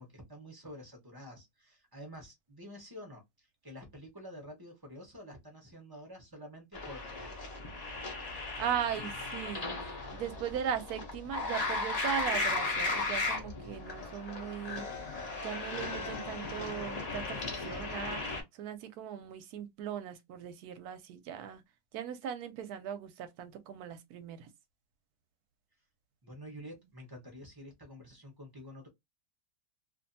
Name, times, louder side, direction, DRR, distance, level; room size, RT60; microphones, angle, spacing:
voice 1, 0.0-7.4 26.2-28.9, equal, 25° right, 0.4 m, -49 dB
sound 1, 6.7-18.4, left 3 dB, 80° left, 0.3 m, -36 dB
voice 2, 8.4-21.6 21.9-24.5, right 9 dB, 70° right, 1.0 m, -39 dB
2.6 x 2.5 x 2.6 m
omnidirectional pair, 1.9 m